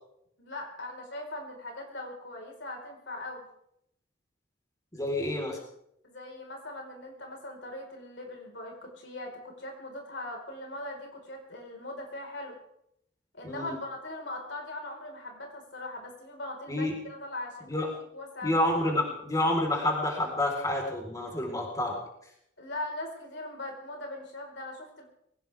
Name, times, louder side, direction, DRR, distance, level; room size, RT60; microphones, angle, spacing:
voice 1, 0.4-3.5 6.0-12.6 13.3-18.8 22.6-25.0, left 1 dB, 75° left, 1 dB, 4.8 m, -40 dB
voice 2, 4.9-5.6 13.4-13.8 16.7-16.9 17.6-17.9 18.4-22.0, left 1 dB, 20° left, 0 dB, 4.3 m, -28 dB
22.5 x 18.0 x 3.6 m, 0.74 s
head